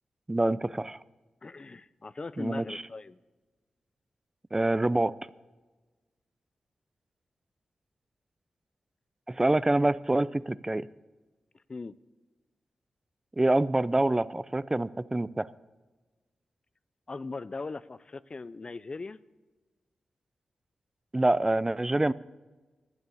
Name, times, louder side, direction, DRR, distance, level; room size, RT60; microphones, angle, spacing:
voice 1, 0.3-1.0 2.4-2.8 4.5-5.1 9.3-10.9 13.4-15.5 21.1-22.1, right 2 dB, 20° right, 18 dB, 0.5 m, -26 dB
voice 2, 1.4-3.2 11.5-12.0 17.1-19.2, left 3 dB, 45° left, 17 dB, 0.5 m, -39 dB
12.0 x 9.6 x 8.4 m, 1.2 s
supercardioid pair, 40°, 2 cm